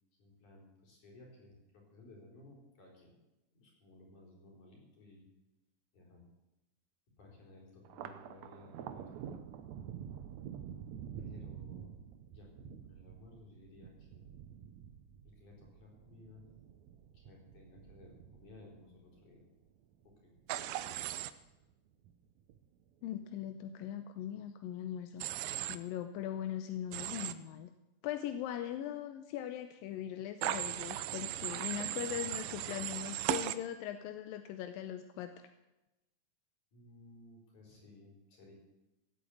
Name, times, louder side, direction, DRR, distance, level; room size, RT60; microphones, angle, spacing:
voice 1, 0.2-3.2 3.5-5.3 5.9-6.2 7.2-9.2 11.2-12.0 12.3-14.3 15.2-16.4 17.1-19.4 20.0-20.3 36.7-38.5, left 2 dB, 60° left, -1 dB, 5.7 m, -57 dB
Thunder, 7.8-20.5 20.9-21.7 22.0-22.9, right 9 dB, 70° right, 1.8 m, -49 dB
Human voice / Train, 20.5-21.3 25.2-25.8 26.9-27.3 30.4-33.6, right 14 dB, 90° right, 2.4 m, -37 dB
voice 2, 23.0-25.2 25.7-27.7 28.0-35.3, left 11 dB, 90° left, 8 dB, 2.5 m, -40 dB
16.5 x 8.6 x 8.4 m, 0.98 s
omnidirectional pair, 4.0 m